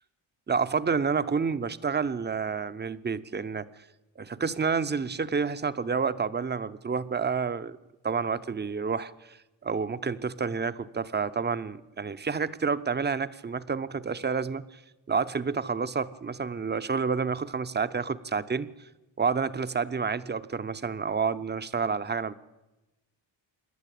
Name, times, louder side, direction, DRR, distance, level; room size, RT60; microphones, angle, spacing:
voice 1, 0.5-3.7 4.2-7.8 8.0-9.4 9.6-14.6 15.1-18.7 19.2-22.3, right 5 dB, 25° right, 13 dB, 0.7 m, -29 dB
27.0 x 11.5 x 8.4 m, 1.0 s
cardioid pair, 115°, 44 cm